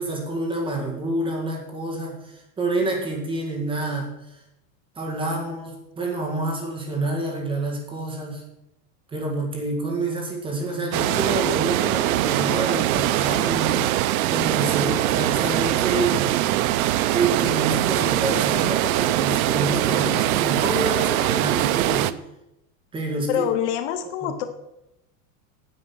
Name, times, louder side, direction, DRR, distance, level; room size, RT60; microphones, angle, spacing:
voice 1, 0.0-2.2 2.6-4.1 5.0-8.4 9.1-13.8 14.2-16.3 17.1-22.1 22.9-23.5 24.2-24.3, right 2 dB, 10° right, 0 dB, 2.1 m, -27 dB
sound 1, 10.9-22.1, right 14 dB, 75° right, 0.7 m, -22 dB
voice 2, 23.3-24.5, left 10 dB, 55° left, 9 dB, 0.9 m, -25 dB
9.5 x 7.8 x 6.2 m, 0.86 s
supercardioid pair, 175°, 43 cm